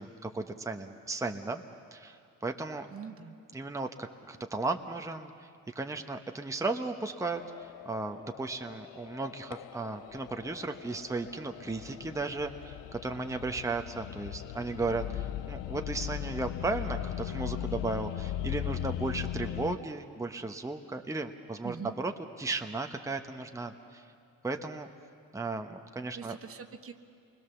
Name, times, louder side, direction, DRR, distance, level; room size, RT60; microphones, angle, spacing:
voice 1, 0.0-1.6 1.9-2.9 3.5-5.3 5.7-22.1 22.4-24.0 24.4-24.9 25.3-26.4, right 3 dB, 10° right, 5 dB, 1.0 m, -35 dB
voice 2, 2.9-3.4 21.6-21.9 26.1-26.9, right 7 dB, 45° right, 7 dB, 1.2 m, -43 dB
sound 1, 7.4-19.8, left 12 dB, 85° left, 0.6 m, -39 dB
28.5 x 21.0 x 7.1 m, 2.4 s
cardioid pair, 95°, 32 cm